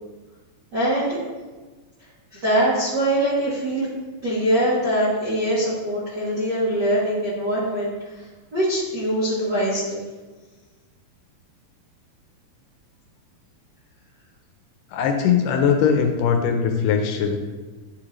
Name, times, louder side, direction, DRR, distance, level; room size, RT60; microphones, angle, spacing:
voice 1, 0.7-1.2 2.3-3.9 4.2-7.9 8.2-8.3 8.5-10.0, right 1 dB, 60° right, -9 dB, 1.1 m, -22 dB
voice 2, 14.9-17.4, left 7 dB, 80° left, 4 dB, 2.1 m, -20 dB
9.9 x 3.6 x 3.2 m, 1.3 s
omnidirectional pair, 4.0 m